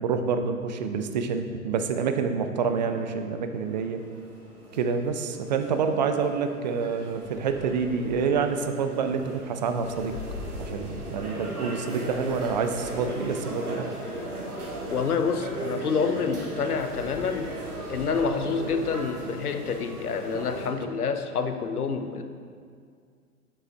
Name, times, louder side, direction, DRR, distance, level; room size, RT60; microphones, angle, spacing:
voice 1, 0.0-4.0 4.7-10.2 10.6-13.9 20.8-20.9, right 5 dB, 35° right, 7 dB, 0.4 m, -27 dB
sound 1, 2.7-20.7, right 1 dB, 85° right, 1.4 m, -37 dB
voice 2, 14.9-17.5 17.9-22.2, left 5 dB, 85° left, 8 dB, 0.6 m, -28 dB
8.2 x 5.4 x 3.5 m, 2.2 s
figure-of-eight pair, 105°, 44 cm